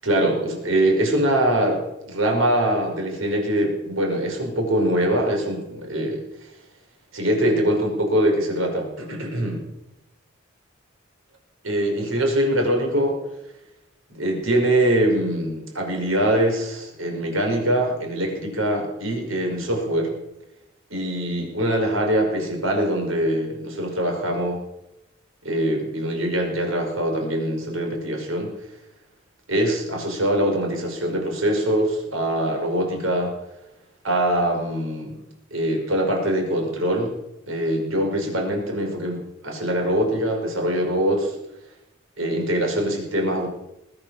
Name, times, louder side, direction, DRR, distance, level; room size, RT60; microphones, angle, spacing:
voice 1, 0.0-1.8 2.1-6.2 7.1-9.6 11.6-13.2 14.1-20.1 20.9-24.6 25.4-28.5 29.5-33.4 34.0-35.2 35.5-37.2 37.5-41.3 42.2-43.5, right 1 dB, 85° right, 2 dB, 5.3 m, -23 dB
20.5 x 9.0 x 7.3 m, 0.87 s
head